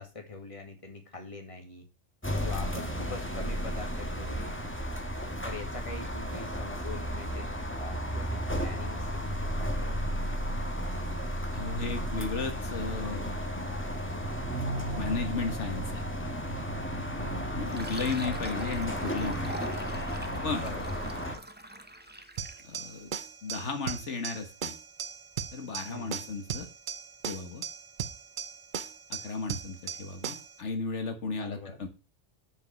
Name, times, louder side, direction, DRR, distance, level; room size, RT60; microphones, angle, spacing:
voice 1, 0.0-1.9 2.4-4.7 5.4-10.0 17.2-17.6 20.5-20.9 25.9-26.3 31.4-31.8, left 3 dB, 30° left, 3 dB, 2.0 m, -43 dB
sound 1, 2.2-21.4, equal, 10° left, 1.4 m, -33 dB
voice 2, 11.5-13.3 14.0-14.3 15.0-16.0 17.0-17.1 17.6-19.6 20.4-20.6 22.6-23.1 23.4-24.7 25.5-26.7 27.3-27.6 29.1-31.9, left 4 dB, 80° left, 6 dB, 1.6 m, -34 dB
Fill (with liquid), 17.7-22.7, right 1 dB, 10° right, 0.7 m, -44 dB
sound 2, 22.4-30.6, right 8 dB, 50° right, 0.7 m, -38 dB
7.4 x 5.1 x 6.9 m, 0.30 s
omnidirectional pair, 1.2 m